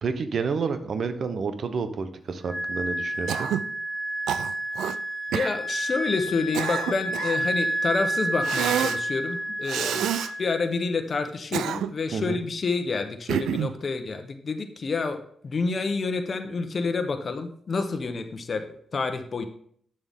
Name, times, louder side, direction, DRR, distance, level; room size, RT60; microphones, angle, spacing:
voice 1, 0.0-3.5 12.1-12.4, right 5 dB, 60° right, 10 dB, 0.9 m, -29 dB
Wind instrument woodwind instrument, 2.5-10.8, right 1 dB, 15° right, 2.1 m, -30 dB
Cough, 3.3-3.7 4.3-5.0 5.3-5.5 6.3-7.5 8.4-9.0 9.7-10.3 11.3-12.1 13.3-13.8, right 10 dB, 80° right, 0.3 m, -28 dB
voice 2, 5.3-10.1 10.4-19.4, left 4 dB, 50° left, 7 dB, 0.9 m, -28 dB
8.8 x 7.0 x 3.6 m, 0.63 s
supercardioid pair, 45°, 0 cm